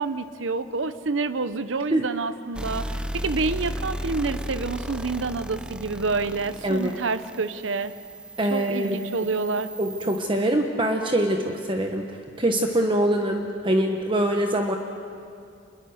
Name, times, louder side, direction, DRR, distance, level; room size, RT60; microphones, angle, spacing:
voice 1, 0.0-2.9 3.1-7.9 8.5-9.7, right 4 dB, 85° right, 12 dB, 0.9 m, -28 dB
sound 1, 2.5-10.2, equal, 5° right, 0.7 m, -35 dB
voice 2, 6.6-7.0 8.4-9.3 9.8-12.1 12.4-14.8, right 1 dB, 25° right, 3 dB, 1.1 m, -24 dB
27.5 x 22.0 x 6.5 m, 2.4 s
head